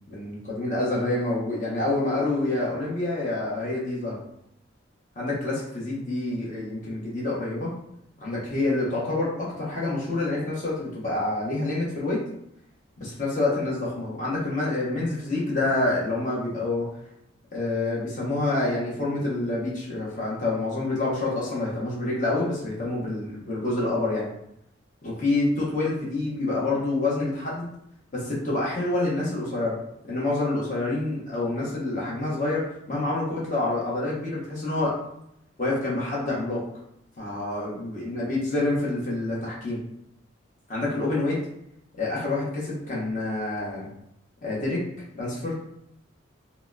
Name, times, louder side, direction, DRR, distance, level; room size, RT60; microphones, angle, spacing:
voice 1, 0.1-4.2 5.2-7.7 8.2-12.2 13.0-16.9 17.5-24.3 25.0-27.7 28.1-29.8 30.0-34.9 35.6-36.6 37.2-39.8 40.7-41.4 42.0-43.9 44.4-44.8 45.1-45.5, left 2 dB, 40° left, -6 dB, 0.9 m, -27 dB
3.7 x 2.0 x 2.3 m, 0.76 s
head